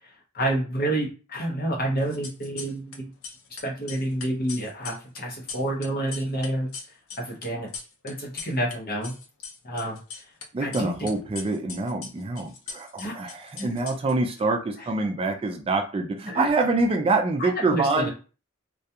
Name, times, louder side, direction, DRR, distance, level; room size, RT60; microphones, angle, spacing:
voice 1, 0.3-3.1 3.6-6.7 7.2-7.7 8.0-9.1 9.6-10.0 10.6-10.9 13.0-13.1 13.6-13.7 16.3-16.5 17.4-18.1, right 1 dB, 45° left, 0 dB, 0.8 m, -28 dB
sound 1, 2.0-3.0 3.2-8.7 9.0-10.4 10.7-14.4, left 5 dB, 75° left, 0.5 m, -40 dB
voice 2, 10.5-18.1, right 3 dB, 25° right, 5 dB, 0.3 m, -25 dB
2.3 x 2.3 x 2.7 m, 0.34 s
head